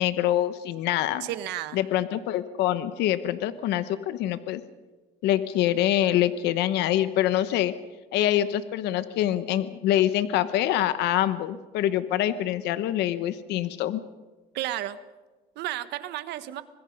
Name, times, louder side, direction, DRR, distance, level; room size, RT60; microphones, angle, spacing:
voice 1, 0.0-1.3 1.7-4.6 5.2-7.7 8.1-14.0, left 12 dB, 85° left, 13 dB, 1.0 m, -25 dB
voice 2, 1.2-1.8 14.5-15.0 15.5-16.6, right 14 dB, 85° right, 12 dB, 1.4 m, -32 dB
25.5 x 21.0 x 5.4 m, 1.2 s
cardioid pair, 110°, 17 cm